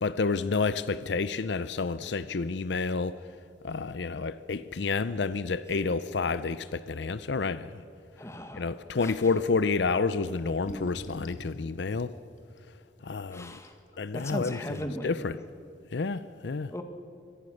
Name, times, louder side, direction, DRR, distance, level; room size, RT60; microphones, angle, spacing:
voice 1, 0.0-3.1 3.6-7.8 8.5-12.1 13.0-13.6 14.0-15.4 15.9-16.7, left 4 dB, 70° left, 0.6 m, -29 dB
voice 2, 8.2-8.7 9.0-9.1 13.3-13.8 14.1-15.1 16.7-16.8, equal, 15° left, 1.8 m, -37 dB
sound 1, 10.6-11.5 12.6-12.7 13.2-13.3 13.5-14.0, equal, 40° left, 2.1 m, -42 dB
25.0 x 18.5 x 6.4 m
head